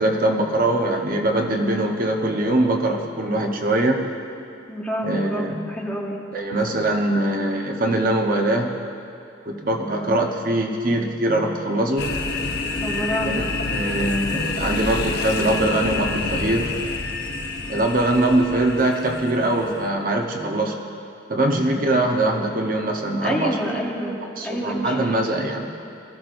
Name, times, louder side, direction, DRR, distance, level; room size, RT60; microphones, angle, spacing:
voice 1, 0.0-4.1 5.0-5.7 6.3-8.8 9.5-12.2 13.3-16.7 17.7-20.8 21.3-23.8 24.4-25.7, right 1 dB, 50° right, 1 dB, 0.9 m, -22 dB
voice 2, 4.7-6.2 9.8-10.2 12.8-13.5 21.5-21.7 23.2-25.5, equal, 5° left, -3 dB, 1.4 m, -28 dB
sound 1, 12.0-19.9, left 3 dB, 60° left, 1.0 m, -28 dB
21.0 x 14.0 x 2.6 m, 2.5 s
head